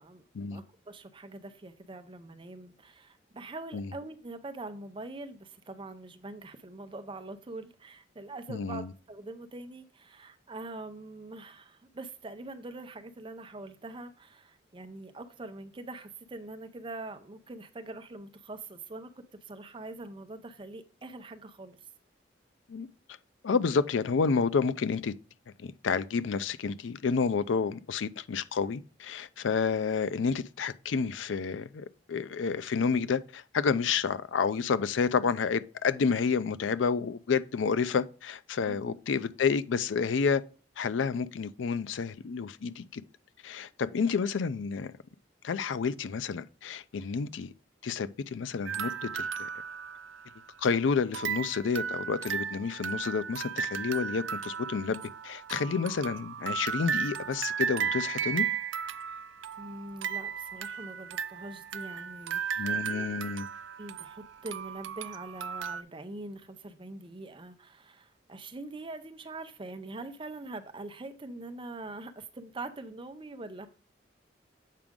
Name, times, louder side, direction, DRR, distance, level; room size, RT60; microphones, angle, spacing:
voice 1, 0.5-21.8 38.6-39.0 59.6-63.2 63.8-73.7, right 2 dB, 30° right, 0.6 m, -43 dB
voice 2, 8.5-8.9 22.7-22.9 23.4-25.1 25.6-40.4 40.8-43.0 43.4-44.9 45.4-47.5 47.8-49.5 50.6-58.5 62.6-63.5, left 5 dB, 90° left, 0.4 m, -30 dB
sound 1, 48.7-50.7 51.1-65.8, right 7 dB, 85° right, 0.4 m, -35 dB
7.4 x 4.9 x 3.6 m
head